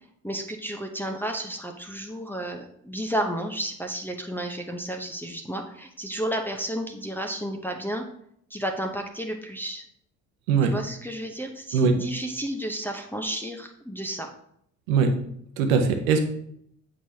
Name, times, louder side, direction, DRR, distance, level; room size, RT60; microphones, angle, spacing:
voice 1, 0.2-8.0 8.5-9.8 10.6-14.3, right 1 dB, 5° left, 2 dB, 0.8 m, -32 dB
voice 2, 15.6-16.2, right 5 dB, 85° right, 6 dB, 0.9 m, -20 dB
7.7 x 4.8 x 2.8 m, 0.70 s
hypercardioid pair, 55°, 40 cm